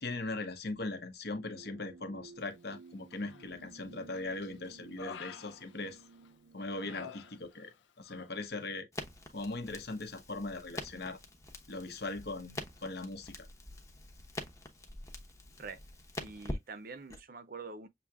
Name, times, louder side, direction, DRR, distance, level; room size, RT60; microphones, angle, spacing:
voice 1, 0.0-6.0 6.5-8.9 9.3-11.2 11.7-13.5, left 2 dB, 60° left, 0.9 m, -40 dB
sound 1, 1.4-7.5, right 4 dB, 85° right, 0.7 m, -56 dB
Human voice, 3.1-3.7 4.1-6.3 6.7-7.8 8.1-8.3, left 6 dB, 90° left, 0.6 m, -49 dB
Crackle, 8.9-17.2, left 1 dB, 15° left, 0.8 m, -45 dB
voice 2, 16.2-17.9, right 4 dB, 50° right, 0.6 m, -45 dB
6.9 x 2.7 x 2.4 m
head